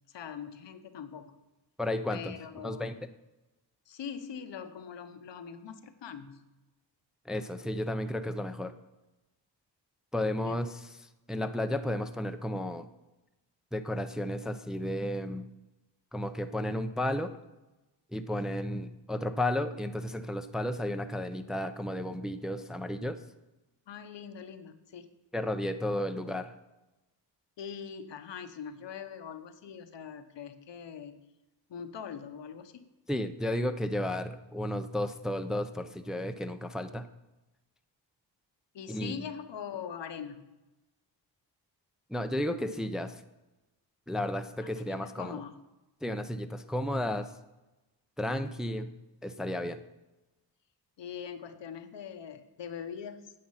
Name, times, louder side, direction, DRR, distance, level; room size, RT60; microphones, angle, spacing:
voice 1, 0.1-1.4 2.1-2.9 3.9-6.4 10.4-10.6 23.9-25.1 27.6-31.2 31.7-32.9 38.7-40.5 44.6-45.6 51.0-53.3, left 7 dB, 70° left, 9 dB, 1.0 m, -42 dB
voice 2, 1.8-2.4 2.6-3.0 7.3-8.7 10.1-10.8 11.3-12.9 13.7-15.5 16.1-17.3 18.1-23.2 25.3-26.5 33.1-37.1 38.9-39.3 42.1-43.2 44.1-45.4 46.0-47.3 48.2-48.9 49.2-49.8, left 1 dB, ahead, 8 dB, 0.5 m, -33 dB
9.8 x 7.7 x 5.6 m, 1.0 s
cardioid pair, 75°, 45 cm